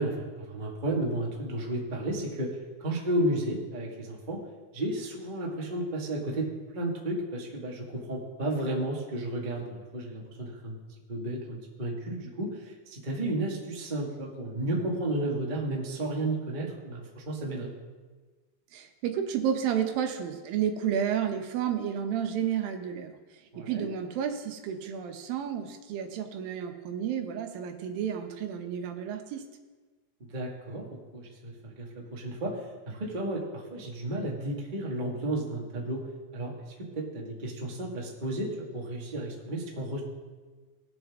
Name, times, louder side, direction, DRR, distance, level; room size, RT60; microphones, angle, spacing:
voice 1, 0.0-4.4 4.7-6.5 6.7-10.8 11.1-17.7 23.5-23.9 30.3-36.0 36.3-36.5 36.9-40.0, right 1 dB, 30° right, -2 dB, 0.9 m, -33 dB
voice 2, 18.7-23.2 23.6-29.4, right 8 dB, 80° right, 6 dB, 2.7 m, -31 dB
20.0 x 7.0 x 3.6 m, 1.4 s
omnidirectional pair, 4.1 m